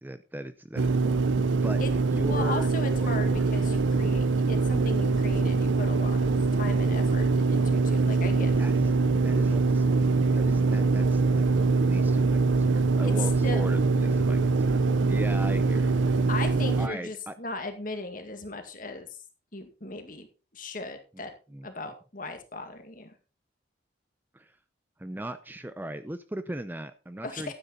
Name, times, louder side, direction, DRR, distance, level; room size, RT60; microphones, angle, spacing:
voice 1, 0.0-1.8 2.1-3.5 8.6-8.9 9.2-9.8 10.3-16.3 16.8-17.4 21.1-21.2 21.5-21.7 24.3-24.6 25.0-27.5, right 1 dB, 10° right, 11 dB, 0.5 m, -38 dB
sound 1, 0.8-16.9, right 3 dB, 85° right, 0.7 m, -23 dB
voice 2, 2.3-8.5 13.0-13.1 13.4-13.6 14.0-14.2 16.3-19.1 19.5-20.3 20.5-21.3 21.6-23.1 27.2-27.5, left 2 dB, 45° left, 6 dB, 2.1 m, -37 dB
12.0 x 9.3 x 4.0 m, 0.33 s
head